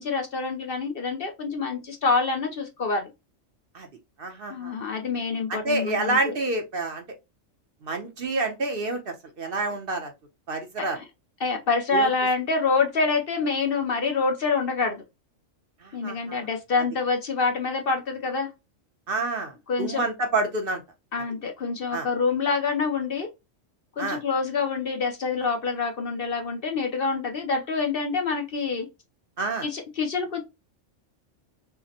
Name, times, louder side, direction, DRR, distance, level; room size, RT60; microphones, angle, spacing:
voice 1, 0.0-3.1 4.5-6.3 10.8-11.0 11.4-15.0 15.9-18.5 19.7-20.0 21.1-23.3 24.0-28.9 29.6-30.4, left 4 dB, 55° left, 0.8 m, -26 dB
voice 2, 4.2-4.8 5.5-7.1 7.8-10.1 10.5-11.0 11.9-12.1 15.8-16.5 19.1-20.8 21.9-22.1 24.0-24.2 29.4-29.7, right 2 dB, 55° right, 0.9 m, -28 dB
5.7 x 2.1 x 2.8 m
omnidirectional pair, 1.3 m